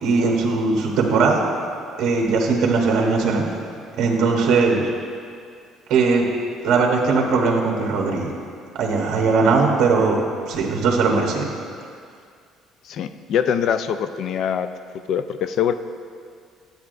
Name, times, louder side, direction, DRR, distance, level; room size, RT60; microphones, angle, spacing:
voice 1, 0.0-1.4 2.0-3.4 4.0-4.8 5.9-6.2 6.6-8.3 8.8-10.2 10.5-11.5, right 4 dB, 60° right, 0 dB, 0.9 m, -19 dB
voice 2, 12.8-14.7 15.1-15.7, left 8 dB, 55° left, 10 dB, 0.3 m, -23 dB
10.5 x 8.2 x 2.5 m, 2.2 s
cardioid pair, 140°, 0 cm